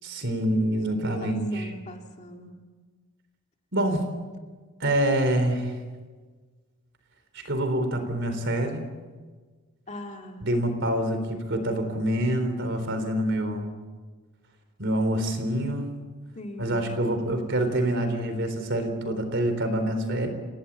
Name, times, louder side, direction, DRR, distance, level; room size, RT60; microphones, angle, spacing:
voice 1, 0.0-1.7 3.7-4.1 4.8-5.7 7.3-8.8 10.4-13.7 14.8-15.9 16.6-20.3, right 1 dB, 55° right, 7 dB, 4.0 m, -26 dB
voice 2, 1.2-2.5 9.9-10.5 16.4-17.0, left 1 dB, 30° left, 3 dB, 2.5 m, -41 dB
29.0 x 17.5 x 8.7 m, 1.4 s
head